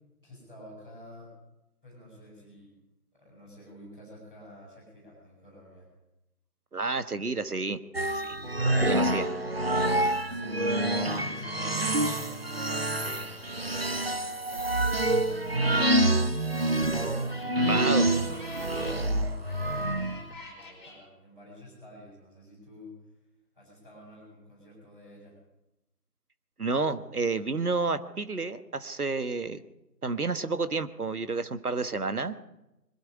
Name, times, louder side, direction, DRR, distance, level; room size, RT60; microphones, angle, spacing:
voice 1, 0.2-1.3 1.8-2.7 3.1-5.9 9.9-16.2 17.0-23.0 23.5-25.4, left 1 dB, 5° right, -13 dB, 5.7 m, -50 dB
voice 2, 6.7-7.8 8.2-8.4 8.6-9.3 17.6-18.1 26.6-29.6 30.0-32.3, right 3 dB, 65° right, 11 dB, 1.5 m, -30 dB
sound 1, 7.9-20.3, right 1 dB, 35° right, 1.0 m, -27 dB
sound 2, 16.3-21.0, left 3 dB, 15° left, 4.9 m, -48 dB
21.5 x 12.5 x 9.8 m, 0.93 s
figure-of-eight pair, 165°, 49 cm